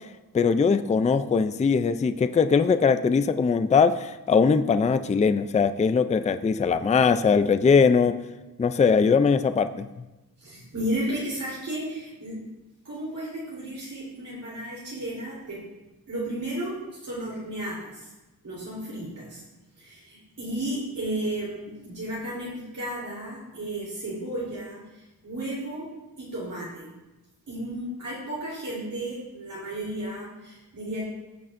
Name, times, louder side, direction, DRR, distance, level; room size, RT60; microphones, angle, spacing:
voice 1, 0.3-8.2 8.6-9.9, left 5 dB, 20° left, 10 dB, 0.3 m, -21 dB
voice 2, 10.4-12.4 12.8-15.6 16.1-18.1 18.4-19.4 19.8-25.9 26.2-26.9 27.5-31.1, right 1 dB, 55° right, -7 dB, 3.6 m, -33 dB
17.0 x 6.7 x 2.6 m, 1.1 s
wide cardioid pair, 130°, 38 cm